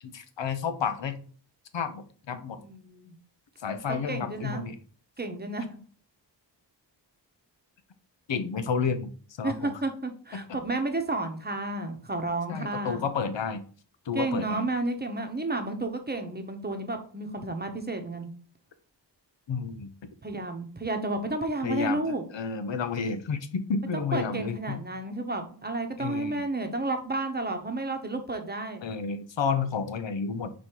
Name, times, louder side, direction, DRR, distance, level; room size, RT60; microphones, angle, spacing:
voice 1, 0.0-1.2 1.7-2.6 3.6-4.8 8.3-9.1 9.4-9.7 10.3-10.6 12.5-13.6 14.0-14.6 19.5-20.1 21.6-24.8 26.0-26.4 28.8-30.5, left 5 dB, 80° left, 9 dB, 0.8 m, -31 dB
voice 2, 2.6-3.1 3.9-4.7 5.2-5.8 9.4-13.0 14.1-18.3 20.2-22.2 24.1-28.8, right 2 dB, 20° right, 6 dB, 1.0 m, -31 dB
5.1 x 4.4 x 4.5 m, 0.43 s
wide cardioid pair, 115°, 43 cm